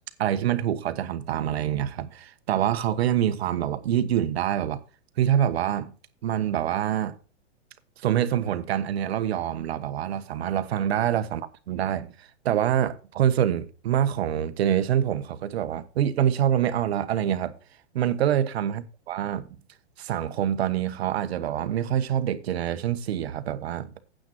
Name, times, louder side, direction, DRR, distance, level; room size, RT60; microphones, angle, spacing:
voice 1, 0.2-4.8 5.2-5.9 6.2-7.1 8.0-17.5 17.9-19.5 20.0-23.9, right 10 dB, 65° right, 1.1 m, -26 dB
9.2 x 7.6 x 4.3 m
hypercardioid pair, 145°, 34 cm